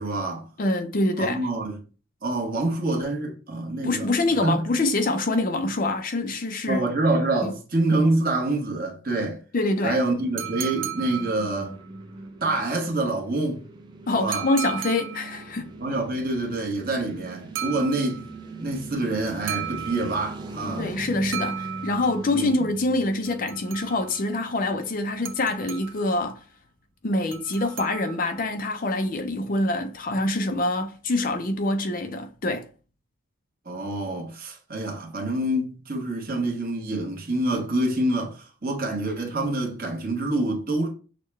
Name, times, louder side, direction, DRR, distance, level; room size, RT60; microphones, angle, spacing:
voice 1, 0.0-0.4 1.2-1.8 2.2-4.1 4.4-4.7 6.7-9.4 9.8-11.8 12.4-13.6 14.1-14.5 15.8-18.2 18.6-20.9 22.3-22.5 33.6-40.9, right 2 dB, 40° right, 1.1 m, -26 dB
voice 2, 0.6-1.5 3.8-6.9 7.4-7.5 9.5-10.0 14.1-15.7 20.8-26.4 27.0-32.6, left 2 dB, 40° left, 0.5 m, -25 dB
sound 1, 10.1-24.3, right 2 dB, 20° right, 0.5 m, -40 dB
sound 2, 10.4-11.9 14.3-15.5 17.5-18.4 19.5-20.5 21.3-22.3 23.2-24.2 25.2-26.2 27.3-28.4, right 10 dB, 70° right, 0.6 m, -35 dB
6.4 x 2.2 x 3.2 m
head